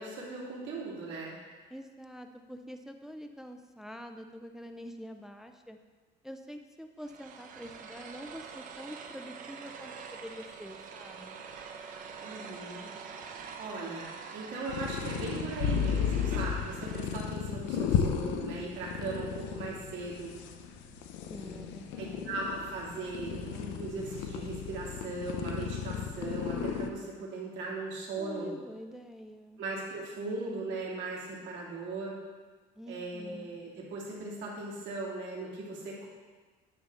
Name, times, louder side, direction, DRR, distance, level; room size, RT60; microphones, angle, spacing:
voice 1, 0.0-1.3 12.2-12.9 13.2-13.3 13.6-14.1 14.3-20.3 22.0-28.5 29.6-32.1 32.9-36.1, right 3 dB, 70° right, -4 dB, 2.4 m, -38 dB
voice 2, 1.7-5.8 6.2-11.4 21.3-22.5 28.2-29.6 32.8-33.5, equal, ahead, 6 dB, 0.3 m, -46 dB
sound 1, 7.0-17.3, right 6 dB, 45° right, 0.7 m, -45 dB
sound 2, 14.7-26.9, left 7 dB, 75° left, 0.7 m, -34 dB
10.5 x 5.3 x 3.5 m, 1.4 s
cardioid pair, 140°, 19 cm